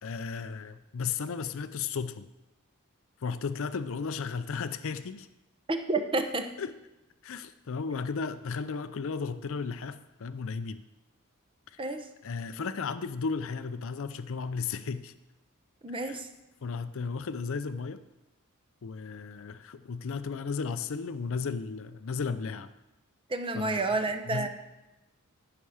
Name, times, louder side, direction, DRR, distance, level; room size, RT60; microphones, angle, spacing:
voice 1, 0.0-2.3 3.2-5.3 6.6-6.7 7.2-10.8 11.7-11.8 12.2-15.1 15.9-16.2 16.6-18.0 18.8-22.7 23.5-24.5, left 5 dB, 65° left, 12 dB, 0.5 m, -34 dB
voice 2, 5.7-6.5 11.8-12.0 15.8-16.3 23.3-24.5, right 2 dB, 25° right, 7 dB, 0.8 m, -30 dB
14.5 x 5.9 x 4.9 m, 0.98 s
head